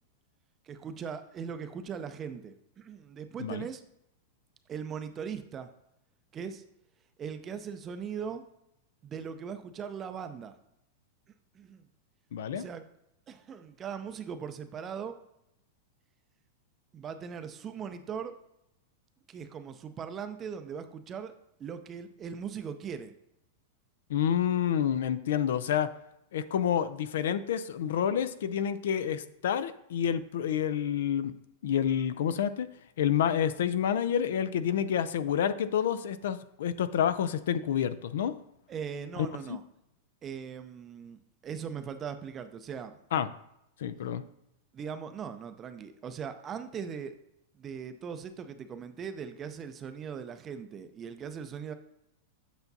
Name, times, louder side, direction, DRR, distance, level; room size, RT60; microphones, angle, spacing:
voice 1, 0.7-3.8 4.7-5.7 6.3-6.6 7.2-8.4 9.0-10.5 11.5-11.9 12.5-12.8 13.3-15.1 16.9-18.3 19.3-21.3 21.6-23.1 38.7-39.6 40.2-43.0 44.7-47.1 47.6-51.7, right 7 dB, 20° right, 9 dB, 0.5 m, -39 dB
voice 2, 12.3-12.7 24.1-25.9 26.3-31.3 31.6-32.7 33.0-38.3 39.2-39.6 43.1-43.3 43.8-44.2, left 9 dB, 80° left, 13 dB, 0.4 m, -28 dB
8.2 x 5.8 x 2.7 m, 0.81 s
supercardioid pair, 155°, 0 cm